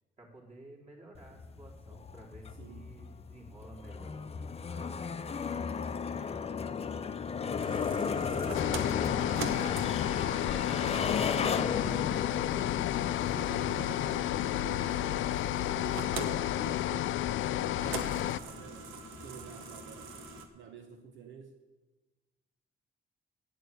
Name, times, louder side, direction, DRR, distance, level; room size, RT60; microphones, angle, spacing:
voice 1, 0.2-4.2 4.7-7.0, right 1 dB, 35° right, -2 dB, 3.8 m, -54 dB
sound 1, 1.1-20.5, left 6 dB, 30° left, 0.7 m, -37 dB
voice 2, 2.6-2.9 9.2-12.3 13.2-20.2 20.5-21.6, right 6 dB, 70° right, 5 dB, 1.0 m, -49 dB
sound 2, 7.6-20.5, right 4 dB, 90° right, 1.3 m, -45 dB
sound 3, 8.5-18.4, left 13 dB, 80° left, 0.4 m, -31 dB
9.0 x 8.9 x 8.4 m, 1.2 s
cardioid pair, 90°, 20 cm